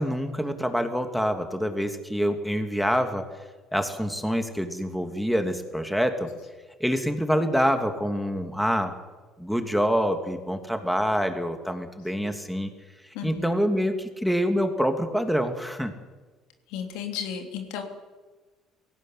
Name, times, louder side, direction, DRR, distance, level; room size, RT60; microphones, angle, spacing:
voice 1, 0.0-3.3 3.7-6.3 6.8-8.9 9.4-12.7 13.2-15.9, equal, ahead, 6 dB, 2.8 m, -26 dB
voice 2, 13.1-13.5 16.7-17.8, left 8 dB, 75° left, 4 dB, 3.2 m, -34 dB
18.0 x 16.5 x 9.6 m, 1.3 s
hypercardioid pair, 65°, 0 cm